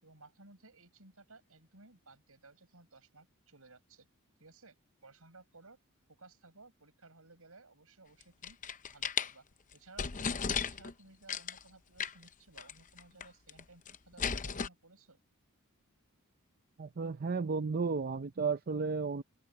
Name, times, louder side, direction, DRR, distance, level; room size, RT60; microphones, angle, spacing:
voice 1, 0.0-4.1 4.4-4.8 5.0-5.8 6.1-8.6 8.9-9.4 9.7-15.2, right 3 dB, 70° right, 7.8 m, -58 dB
sound 1, 8.2-9.3 9.7-9.8 10.0-10.9 11.3-11.6 12.0-12.3 12.6-12.7 13.0-13.6 13.9-14.7, left 6 dB, 35° left, 0.7 m, -35 dB
voice 2, 16.8-19.2, right 4 dB, 45° right, 0.5 m, -33 dB
head